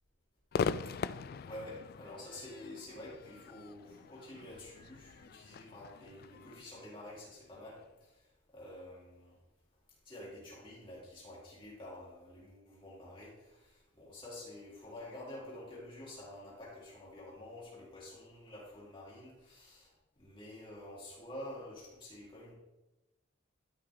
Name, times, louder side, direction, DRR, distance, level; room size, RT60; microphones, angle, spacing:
Crowd / Fireworks, 0.5-7.8, left 5 dB, 50° left, 0.3 m, -41 dB
voice 1, 1.5-7.8 8.5-9.4 10.1-19.9 20.2-22.5, left 1 dB, 25° left, -6 dB, 3.9 m, -49 dB
13.0 x 6.2 x 3.7 m, 1.0 s
head